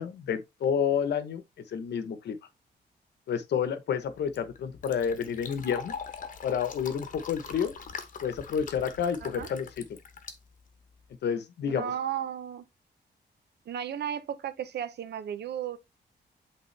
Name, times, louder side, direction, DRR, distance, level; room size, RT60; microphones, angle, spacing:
voice 1, 0.0-1.4 1.7-2.4 3.3-5.9 6.4-7.7 8.2-9.8 11.2-11.8, left 7 dB, 70° left, 1.0 m, -29 dB
Fill (with liquid), 4.1-11.1, left 6 dB, 45° left, 1.0 m, -43 dB
voice 2, 11.6-12.6 13.7-15.8, right 9 dB, 70° right, 0.8 m, -34 dB
8.3 x 3.7 x 3.3 m
wide cardioid pair, 180°, 18 cm